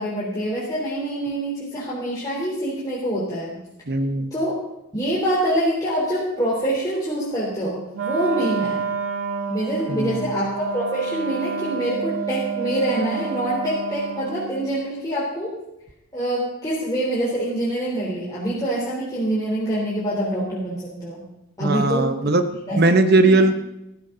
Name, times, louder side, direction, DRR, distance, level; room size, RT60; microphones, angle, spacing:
voice 1, 0.0-3.5 4.3-4.6 4.9-8.8 9.5-15.6 16.1-21.2 21.6-22.2 22.7-23.0 23.2-23.4, right 1 dB, 15° left, -8 dB, 3.7 m, -25 dB
voice 2, 3.9-4.3 9.9-10.3 21.6-22.4 22.8-23.7, right 2 dB, 45° right, 9 dB, 1.0 m, -19 dB
Wind instrument woodwind instrument, 7.9-14.6, right 5 dB, 70° right, 1.7 m, -29 dB
17.0 x 15.0 x 4.0 m, 0.88 s
head